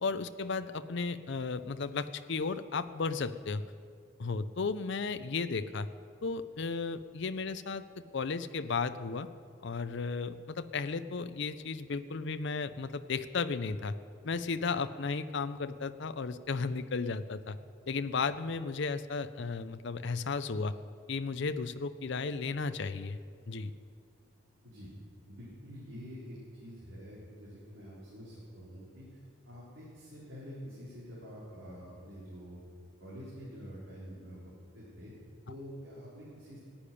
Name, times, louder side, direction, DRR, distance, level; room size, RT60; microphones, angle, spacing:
voice 1, 0.0-3.6 4.2-5.9 6.2-7.8 8.1-9.3 9.6-14.0 14.2-17.6 17.9-20.7 21.1-23.2 23.5-23.7, left 4 dB, 60° left, 11 dB, 0.5 m, -34 dB
voice 2, 25.3-29.2 29.5-32.6 33.0-35.1 35.5-36.6, equal, 65° right, -8 dB, 4.4 m, -47 dB
15.0 x 8.6 x 9.9 m, 2.3 s
head